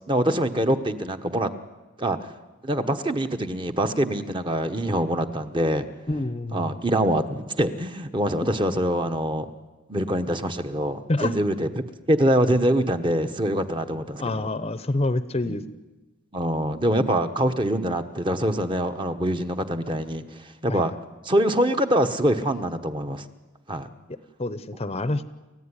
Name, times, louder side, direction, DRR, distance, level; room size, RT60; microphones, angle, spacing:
voice 1, 0.1-1.5 2.0-2.2 2.6-5.8 6.5-9.5 9.9-11.7 12.1-14.5 15.4-15.6 16.3-20.9 21.2-23.2 23.7-23.9, right 1 dB, 25° right, 7 dB, 1.2 m, -24 dB
voice 2, 6.1-6.8 11.1-11.3 14.2-15.6 20.7-20.8 24.1-25.2, left 2 dB, 30° left, 13 dB, 0.8 m, -27 dB
29.0 x 15.0 x 9.9 m, 1.2 s
head